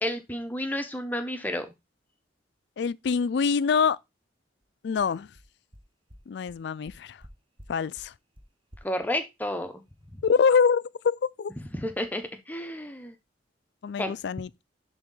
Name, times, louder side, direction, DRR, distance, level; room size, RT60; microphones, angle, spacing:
voice 1, 0.0-1.7 8.8-9.8 10.1-10.2 11.7-13.2 14.0-14.2, left 1 dB, 10° left, 0.8 m, -31 dB
voice 2, 2.8-4.0 4.8-5.3 6.3-7.2 7.7-8.1 10.2-11.5 13.8-14.5, left 6 dB, 65° left, 0.4 m, -25 dB
sound 1, 4.6-4.7 5.0-5.1 5.4-5.5 5.7-5.8 6.1-6.2 6.5-6.6 6.8-7.3 7.6-7.7 8.0-8.1 8.4-8.5 8.7-8.8, equal, 30° right, 1.0 m, -49 dB
10.5 x 3.5 x 3.8 m
head